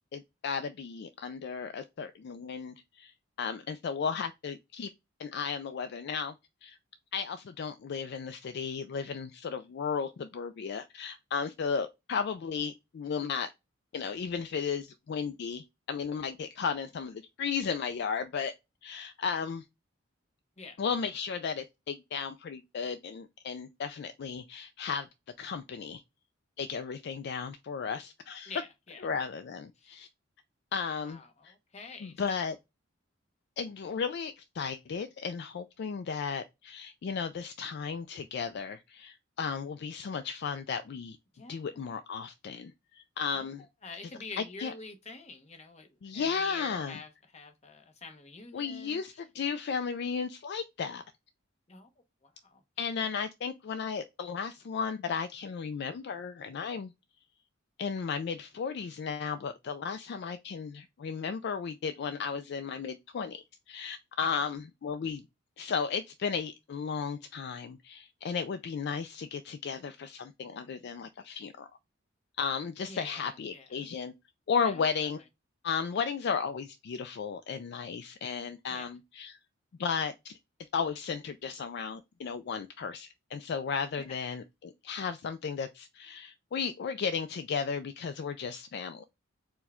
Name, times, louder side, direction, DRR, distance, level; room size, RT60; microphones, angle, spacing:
voice 1, 0.0-3.1 3.4-4.9 5.2-6.3 6.6-6.8 7.1-13.5 13.9-18.5 18.8-19.6 20.8-25.1 25.4-26.0 26.6-28.5 29.0-30.1 30.7-31.5 32.0-32.6 33.6-41.2 41.5-43.6 44.6-44.7 46.0-47.0 48.5-51.0 52.8-56.9 57.8-65.3 65.6-71.7 72.4-74.1 74.5-75.2 75.6-79.4 79.8-80.4 80.7-89.0, left 6 dB, 55° left, 0.3 m, -34 dB
voice 2, 28.5-29.0 29.8-29.9 31.0-32.6 41.3-41.6 43.3-43.5 43.8-45.9 46.1-49.0 51.7-51.9 52.2-52.6 64.3-64.4 72.9-73.7 74.7-75.1 78.7-78.9 84.0-84.1, left 3 dB, 35° left, 0.8 m, -47 dB
4.5 x 2.2 x 4.2 m
head